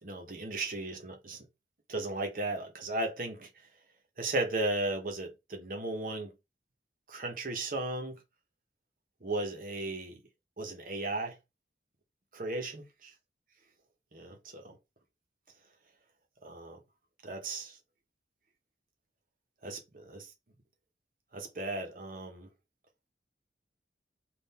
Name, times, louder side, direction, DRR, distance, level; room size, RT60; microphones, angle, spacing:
voice 1, 0.0-1.4 1.9-3.5 4.2-6.3 7.1-8.2 9.2-10.2 10.6-11.3 12.3-12.8 14.1-14.7 16.4-16.8 17.2-17.8 19.6-20.3 21.3-22.5, right 2 dB, 50° right, 0.9 m, -35 dB
3.7 x 2.5 x 4.1 m
head